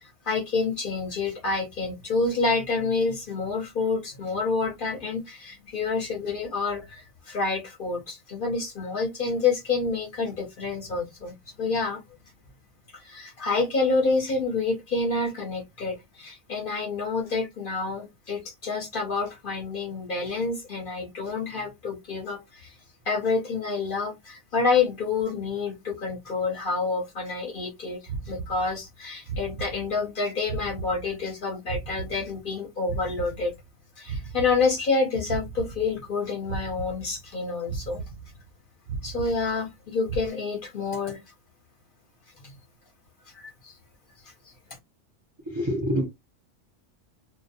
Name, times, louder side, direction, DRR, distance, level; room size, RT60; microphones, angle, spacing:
voice 1, 0.0-12.0 12.9-22.8 23.1-28.0 28.3-33.5 34.0-38.0 39.0-41.2 42.4-42.5 43.3-43.8, left 4 dB, 55° left, 0.7 m, -28 dB
sound 1, 28.1-29.0 29.3-30.2 30.5-32.6 32.9-35.0 35.3-36.2 36.5-37.4 37.7-38.6 38.9-39.8 40.1-40.3, right 4 dB, 75° right, 0.9 m, -37 dB
voice 2, 45.5-46.0, equal, 30° right, 0.5 m, -26 dB
2.2 x 2.1 x 2.7 m
omnidirectional pair, 1.2 m